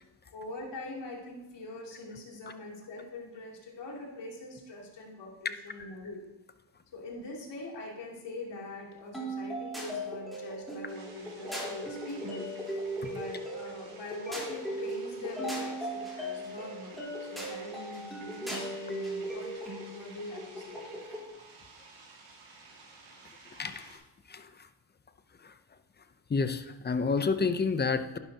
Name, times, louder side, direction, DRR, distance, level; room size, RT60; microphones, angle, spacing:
voice 1, 0.3-6.2 6.9-12.5 13.1-20.9, left 2 dB, 60° left, -2 dB, 3.0 m, -43 dB
sound 1, 9.1-21.3, right 1 dB, ahead, 3.7 m, -38 dB
sound 2, 10.9-24.0, right 3 dB, 75° right, 3.4 m, -54 dB
voice 2, 23.6-24.0 24.3-24.7 25.4-25.5 26.3-28.2, left 4 dB, 20° left, 10 dB, 0.7 m, -30 dB
11.0 x 11.0 x 2.9 m, 0.96 s
cardioid pair, 85°, 46 cm